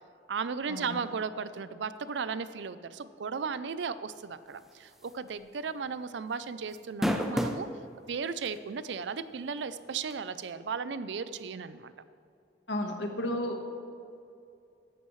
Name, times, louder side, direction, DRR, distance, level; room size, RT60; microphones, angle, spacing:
voice 1, 0.3-7.7 8.1-11.9, right 5 dB, 85° right, 14 dB, 0.5 m, -35 dB
sound 1, 5.1-5.3 5.6-5.7 6.7-7.7 8.4-8.5 10.1-10.2, equal, ahead, 0.5 m, -29 dB
voice 2, 12.7-13.7, left 1 dB, 85° left, 3 dB, 1.4 m, -33 dB
14.5 x 11.0 x 3.2 m, 2.5 s
head